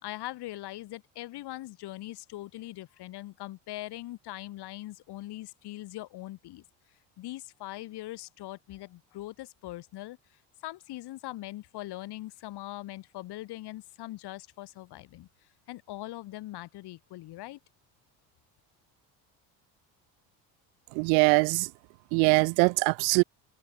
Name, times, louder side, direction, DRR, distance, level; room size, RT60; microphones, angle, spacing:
voice 1, 0.0-6.6 7.2-10.2 10.6-15.3 15.7-17.6, left 16 dB, 60° left, 1.6 m, -41 dB
voice 2, 20.9-21.7 22.1-23.2, right 40 dB or more, 80° right, 0.7 m, -22 dB
open air
supercardioid pair, 90°, 45 cm